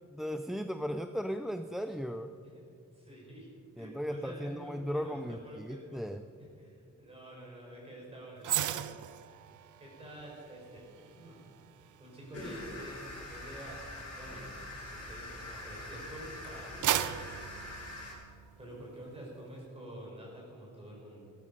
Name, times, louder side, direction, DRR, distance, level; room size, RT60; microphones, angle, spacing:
voice 1, 0.1-2.3 3.8-6.3, equal, ahead, 8 dB, 0.3 m, -36 dB
voice 2, 2.9-3.5 3.8-6.0 6.4-9.0 9.8-11.5 12.0-13.0 13.3-14.5 14.9-17.2 18.6-21.3, right 1 dB, 20° right, -3 dB, 4.6 m, -48 dB
sound 1, 8.4-15.8 16.3-18.7 19.0-19.2, right 11 dB, 75° right, 0.5 m, -38 dB
sound 2, 12.3-18.1, left 1 dB, 55° left, 3.8 m, -44 dB
16.5 x 12.5 x 5.4 m, 2.3 s
wide cardioid pair, 175°, 30 cm